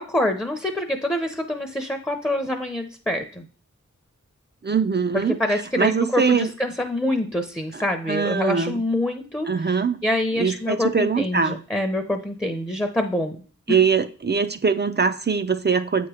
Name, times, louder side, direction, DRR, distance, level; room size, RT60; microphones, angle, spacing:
voice 1, 0.0-3.5 5.4-9.7 10.0-13.4, left 1 dB, 10° left, 5 dB, 0.7 m, -26 dB
voice 2, 4.6-5.4 5.8-6.5 7.7-8.8 9.5-10.0 10.4-11.6 13.7-16.1, right 5 dB, 35° right, 10 dB, 0.4 m, -22 dB
7.8 x 3.0 x 4.8 m, 0.41 s
wide cardioid pair, 45°, 31 cm